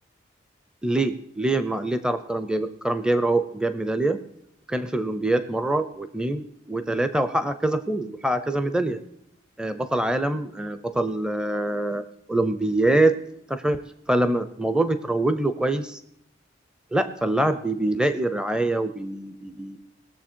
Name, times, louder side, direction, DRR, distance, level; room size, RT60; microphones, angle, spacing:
voice 1, 0.8-4.2 4.7-9.0 9.6-12.0 12.3-13.2 13.5-13.8 14.1-16.0 16.9-19.8, right 2 dB, 5° right, 10 dB, 0.5 m, -24 dB
21.0 x 7.1 x 4.5 m, 0.74 s
head